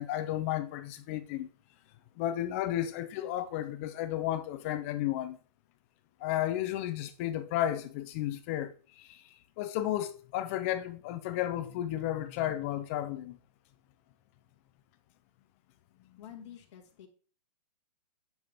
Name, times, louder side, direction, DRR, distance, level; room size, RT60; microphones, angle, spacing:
voice 1, 0.0-1.5 2.2-5.4 6.2-13.4, left 12 dB, 20° left, 0.4 m, -33 dB
voice 2, 16.2-17.1, left 9 dB, 45° left, 2.1 m, -49 dB
9.3 x 5.7 x 3.4 m
hypercardioid pair, 155°, 21 cm